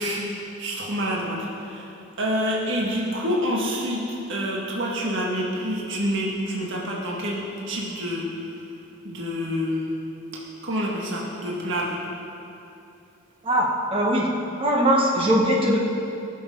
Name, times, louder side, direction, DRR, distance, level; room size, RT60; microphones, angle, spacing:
voice 1, 0.0-1.9 2.2-4.0 4.3-8.2 9.0-9.9 10.6-12.0, equal, 60° right, -3 dB, 1.8 m, -27 dB
voice 2, 13.4-14.3 14.6-15.8, equal, 25° right, -2 dB, 1.2 m, -20 dB
20.0 x 7.1 x 5.3 m, 2.8 s
head